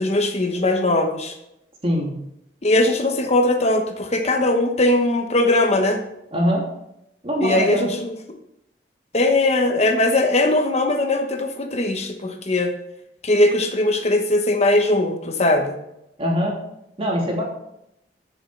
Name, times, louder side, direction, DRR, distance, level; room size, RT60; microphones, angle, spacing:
voice 1, 0.0-1.3 2.6-6.0 7.4-8.1 9.1-12.7 13.2-15.8, left 2 dB, 40° left, 5 dB, 1.1 m, -20 dB
voice 2, 6.3-6.7 7.2-8.0 16.2-16.6 17.0-17.4, equal, 35° right, -2 dB, 3.1 m, -22 dB
14.0 x 7.0 x 4.6 m, 0.82 s
head